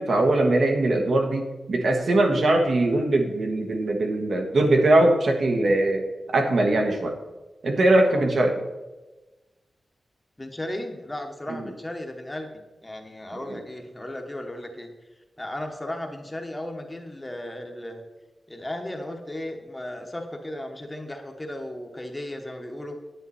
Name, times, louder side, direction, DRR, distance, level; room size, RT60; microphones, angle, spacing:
voice 1, 0.0-7.2 7.6-8.6 11.5-11.7 13.3-13.6, right 2 dB, 55° right, 4 dB, 1.4 m, -21 dB
voice 2, 10.4-14.9 15.4-18.0 18.5-22.9, left 1 dB, 10° left, 4 dB, 1.1 m, -35 dB
10.0 x 9.0 x 4.2 m, 1.1 s
wide cardioid pair, 175°, 0 cm